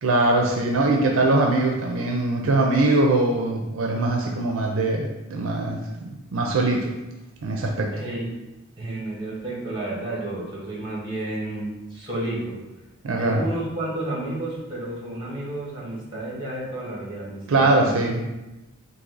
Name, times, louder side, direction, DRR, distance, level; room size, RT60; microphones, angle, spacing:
voice 1, 0.0-6.9 7.4-7.9 13.0-13.4 17.5-18.2, right 2 dB, 70° right, 1 dB, 0.5 m, -22 dB
voice 2, 7.9-8.3 8.8-12.6 13.2-18.3, right 1 dB, 25° right, -4 dB, 1.4 m, -31 dB
4.1 x 2.7 x 3.9 m, 1.0 s
head